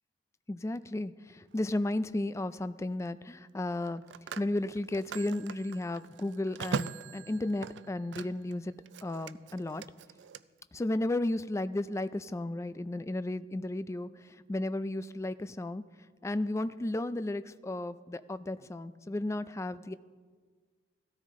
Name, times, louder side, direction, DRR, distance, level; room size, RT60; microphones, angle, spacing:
voice 1, 0.5-4.0 4.4-8.7 9.0-9.8 10.7-15.8 16.2-20.0, left 1 dB, 15° left, 14 dB, 0.3 m, -34 dB
Telephone, 1.5-1.7 3.7-8.5 8.8-10.4, right 6 dB, 80° right, 0.4 m, -41 dB
16.0 x 13.0 x 3.7 m, 1.5 s
head